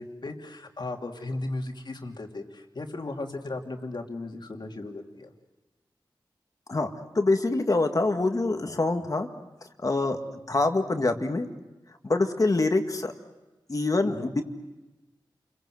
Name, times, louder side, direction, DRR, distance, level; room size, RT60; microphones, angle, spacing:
voice 1, 0.0-5.3 14.0-14.3, left 2 dB, 60° left, 3 dB, 2.9 m, -36 dB
voice 2, 7.1-9.3 9.8-10.2 10.5-11.5 12.0-13.1 13.7-14.4, left 2 dB, 45° left, 6 dB, 2.0 m, -25 dB
29.0 x 23.0 x 7.9 m, 1.1 s
wide cardioid pair, 90°, 8 cm